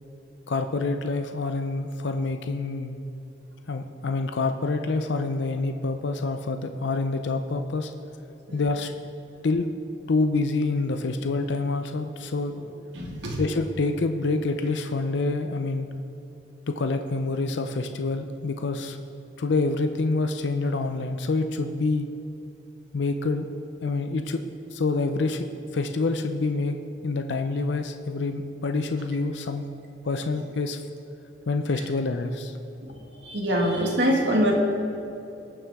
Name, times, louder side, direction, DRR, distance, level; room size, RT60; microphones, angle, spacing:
voice 1, 0.5-3.0 3.7-7.9 8.5-8.9 9.4-9.7 10.1-12.6 13.4-15.9 16.7-19.0 19.4-22.1 22.9-23.5 23.8-24.4 24.7-25.5 25.7-29.7 30.0-30.8 31.5-32.6, left 3 dB, 70° left, 7 dB, 0.5 m, -27 dB
voice 2, 12.9-13.4 32.8-33.0 33.2-34.5, equal, 70° right, -1 dB, 2.0 m, -24 dB
19.5 x 7.0 x 3.6 m, 2.9 s
head